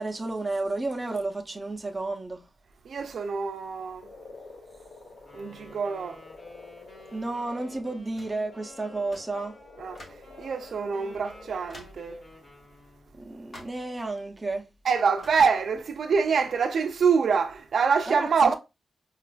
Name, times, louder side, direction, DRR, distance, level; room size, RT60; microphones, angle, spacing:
voice 1, 0.0-2.4 7.1-9.5 13.1-14.7 18.1-18.6, right 2 dB, 15° right, 0.5 m, -32 dB
voice 2, 2.8-4.1 5.3-6.2 9.8-12.2 14.8-18.5, right 5 dB, 70° right, 0.3 m, -25 dB
Frog, 4.0-11.8, left 3 dB, 75° left, 0.6 m, -49 dB
Wind instrument woodwind instrument, 5.2-13.2, left 2 dB, 55° left, 1.3 m, -52 dB
sound 1, 8.2-8.4 9.1-9.4 9.9-10.3 10.9-11.0 11.7-12.1 13.5-13.9 15.2-15.5, left 1 dB, 35° left, 1.0 m, -48 dB
4.9 x 2.4 x 2.3 m
wide cardioid pair, 175°, 0 cm